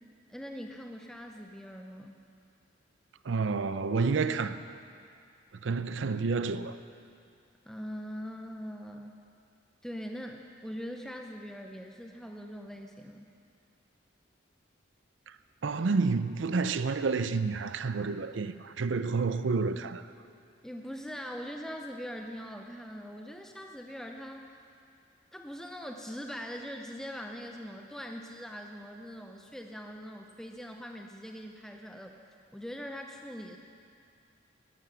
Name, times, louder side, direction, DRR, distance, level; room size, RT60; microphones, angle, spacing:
voice 1, 0.3-2.2 7.6-9.1 9.8-13.3 20.6-24.5 25.3-32.2 32.5-33.6, equal, 5° left, 0.5 m, -42 dB
voice 2, 3.2-4.6 5.6-6.8 15.3-15.4 15.6-20.1, right 4 dB, 75° right, 0.5 m, -29 dB
12.5 x 11.5 x 6.8 m
head